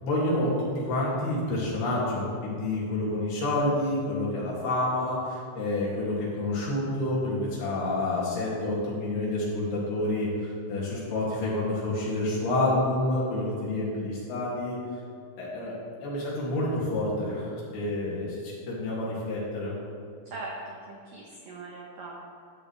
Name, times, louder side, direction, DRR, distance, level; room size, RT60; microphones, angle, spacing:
voice 1, 0.0-14.8 15.4-15.8 16.0-19.8, left 1 dB, 60° left, -7 dB, 4.2 m, -28 dB
voice 2, 20.3-22.4, right 2 dB, 85° right, -2 dB, 1.9 m, -41 dB
12.5 x 10.5 x 3.4 m, 2.3 s
omnidirectional pair, 5.5 m